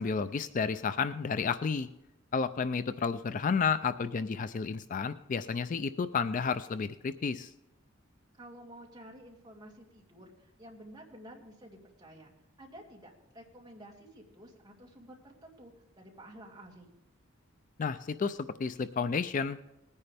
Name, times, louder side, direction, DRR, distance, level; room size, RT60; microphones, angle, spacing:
voice 1, 0.0-1.9 2.3-7.5 17.8-19.7, left 5 dB, 40° left, 13 dB, 0.4 m, -31 dB
voice 2, 8.4-12.3 12.6-16.9, right 1 dB, 20° right, -1 dB, 2.3 m, -51 dB
19.5 x 9.8 x 3.5 m, 0.91 s
head